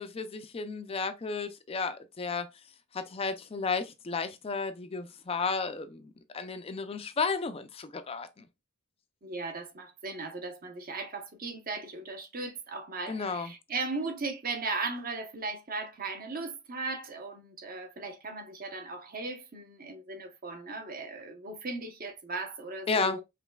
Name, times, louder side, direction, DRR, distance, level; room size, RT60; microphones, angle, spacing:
voice 1, 0.0-2.5 2.9-8.4 13.1-13.5 22.9-23.2, left 4 dB, 25° left, 0.4 m, -33 dB
voice 2, 9.2-23.2, right 3 dB, 45° right, 0.8 m, -37 dB
5.0 x 3.1 x 2.3 m
head